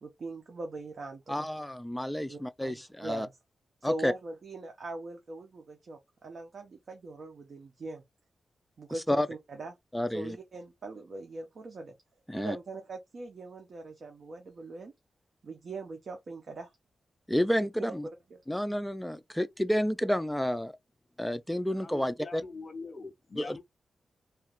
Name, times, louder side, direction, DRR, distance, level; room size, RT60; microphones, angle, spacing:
voice 1, 0.0-1.5 2.2-3.3 3.8-8.0 8.8-9.7 10.1-11.9 12.3-14.9 15.4-16.7 17.6-17.7 18.3-18.4, right 2 dB, 55° right, 0.8 m, -41 dB
voice 2, 1.3-3.3 3.8-4.1 9.1-9.3 9.9-10.4 12.3-12.6 17.3-18.1 18.5-20.7 21.2-22.4 23.4-23.6, equal, 5° left, 0.4 m, -30 dB
voice 3, 21.8-23.6, left 4 dB, 40° left, 1.0 m, -43 dB
3.1 x 2.3 x 3.1 m
wide cardioid pair, 105°, 0 cm